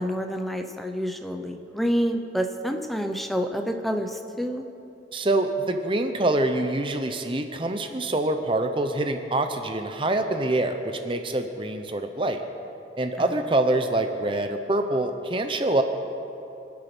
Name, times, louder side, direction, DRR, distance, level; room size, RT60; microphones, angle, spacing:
voice 1, 0.0-4.6 13.2-13.3, equal, ahead, 4 dB, 0.9 m, -28 dB
voice 2, 5.1-12.4 13.0-15.8, right 2 dB, 30° right, 7 dB, 0.7 m, -25 dB
25.5 x 8.5 x 6.1 m, 3.0 s
head